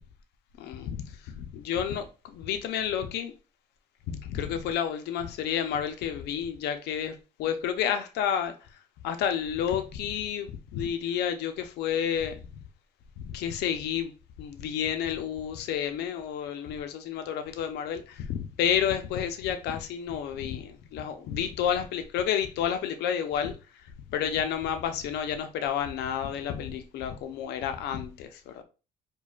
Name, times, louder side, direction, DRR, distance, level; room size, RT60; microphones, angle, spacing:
voice 1, 0.6-3.3 4.1-8.8 9.0-12.4 13.2-14.1 14.4-23.8 24.1-28.6, left 9 dB, 80° left, 0.6 m, -30 dB
5.0 x 2.3 x 2.4 m
cardioid pair, 110°, 17 cm